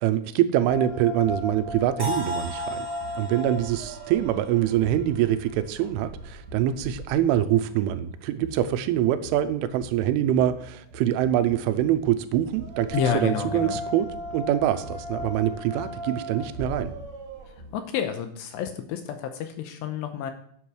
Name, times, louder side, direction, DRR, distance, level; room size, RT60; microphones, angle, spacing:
voice 1, 0.0-2.9 3.2-16.9, right 11 dB, 85° right, 11 dB, 3.2 m, -24 dB
sound 1, 0.7-17.8, left 1 dB, 50° right, 2.4 m, -37 dB
sound 2, 2.0-5.9, left 1 dB, 10° left, 1.6 m, -37 dB
voice 2, 12.9-13.8 17.5-20.3, left 8 dB, 80° left, 7 dB, 2.7 m, -30 dB
8.6 x 8.3 x 6.2 m, 0.64 s
omnidirectional pair, 5.5 m